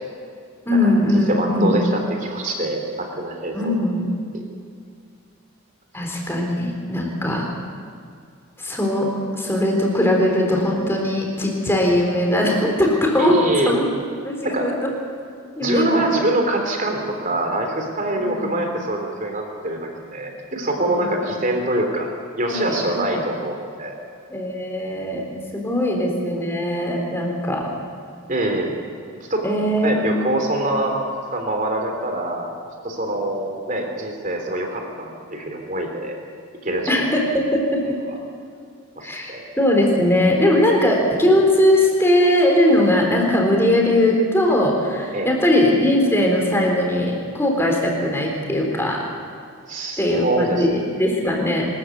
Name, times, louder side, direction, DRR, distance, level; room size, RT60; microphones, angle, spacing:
voice 1, 0.7-1.8 3.5-4.1 5.9-7.4 8.6-9.1 9.4-13.3 13.7-13.9 14.2-14.7 15.6-16.1 18.2-18.6 20.8-21.3 22.5-23.2 24.3-25.2 25.5-27.7 29.4-30.4 36.9-37.8 39.0-49.0 50.0-51.7, left 1 dB, 10° left, 0 dB, 3.9 m, -20 dB
voice 2, 1.3-3.8 4.3-4.5 13.2-13.7 14.4-14.7 15.6-22.1 22.4-23.9 25.8-25.9 28.3-28.8 29.3-29.4 29.8-31.0 31.3-32.5 32.8-36.2 36.6-37.1 38.1-38.2 39.0-39.4 45.1-45.3 49.7-50.7, right 1 dB, 35° right, 3 dB, 3.4 m, -24 dB
24.5 x 14.0 x 8.3 m, 2.4 s
head